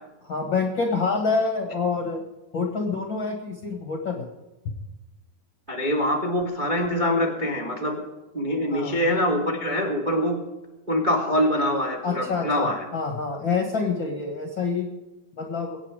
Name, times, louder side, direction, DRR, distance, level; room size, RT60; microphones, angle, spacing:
voice 1, 0.2-2.2 2.5-4.3 8.7-9.0 12.0-14.9 15.4-15.8, left 4 dB, 50° left, 3 dB, 1.4 m, -27 dB
voice 2, 5.7-8.0 8.3-10.4 10.9-12.8, left 1 dB, 45° right, 2 dB, 0.6 m, -24 dB
23.0 x 9.0 x 4.9 m, 1.1 s
omnidirectional pair, 4.4 m